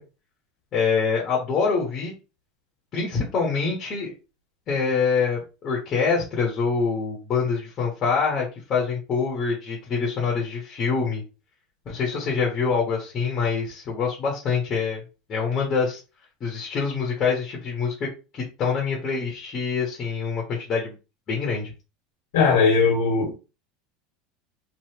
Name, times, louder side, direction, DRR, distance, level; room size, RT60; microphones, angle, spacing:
voice 1, 0.7-2.1 2.9-4.1 4.7-11.2 11.8-15.0 15.3-16.0 16.4-18.1 18.3-20.9 21.3-21.7, left 5 dB, 25° left, -2 dB, 1.0 m, -25 dB
voice 2, 22.3-23.4, left 5 dB, 90° left, -1 dB, 1.3 m, -19 dB
3.2 x 2.6 x 2.9 m, 0.31 s
supercardioid pair, 165°, 0 cm